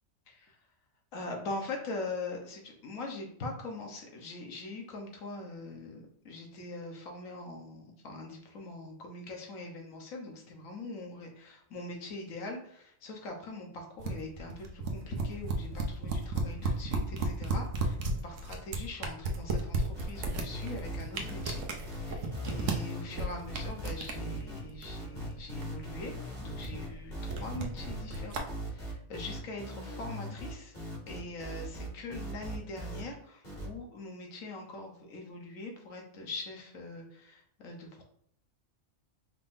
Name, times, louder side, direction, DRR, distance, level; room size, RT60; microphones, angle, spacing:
voice 1, 1.1-21.6 21.9-30.7 31.1-38.0, left 2 dB, 85° left, 1 dB, 1.4 m, -42 dB
sound 1, 14.0-28.4, right 3 dB, 75° right, 1.1 m, -35 dB
sound 2, 19.9-33.0 33.4-33.7, equal, 35° left, 2.0 m, -40 dB
4.8 x 3.6 x 2.6 m, 0.68 s
omnidirectional pair, 1.4 m